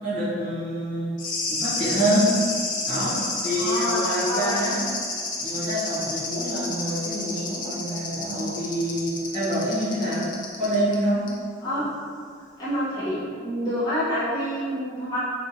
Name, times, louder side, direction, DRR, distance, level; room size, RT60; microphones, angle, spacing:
voice 1, 0.0-1.1 1.5-2.4 2.8-4.8 5.4-10.3 10.6-11.3, equal, 25° right, -12 dB, 1.1 m, -26 dB
sound 1, 1.2-11.0 11.3-11.4, left 3 dB, 45° left, 0.4 m, -30 dB
voice 2, 3.6-4.5 11.6-11.8 12.6-15.2, equal, 20° left, -13 dB, 1.3 m, -27 dB
3.5 x 2.5 x 2.9 m, 2.1 s
head